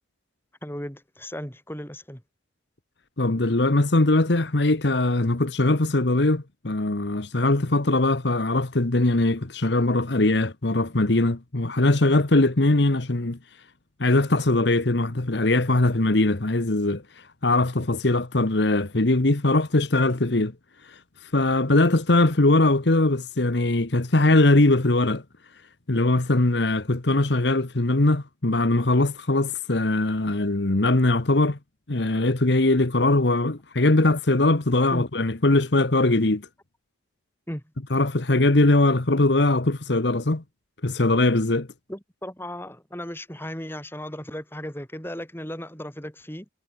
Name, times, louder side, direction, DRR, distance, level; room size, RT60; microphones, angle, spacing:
voice 1, 0.6-2.2 34.9-35.0 37.5-37.6 41.9-46.5, equal, 10° left, 6.1 m, -36 dB
voice 2, 3.2-13.4 14.0-20.5 20.8-25.2 25.9-31.6 31.9-36.5 37.9-40.4 40.8-41.7, left 2 dB, 65° left, 1.3 m, -21 dB
head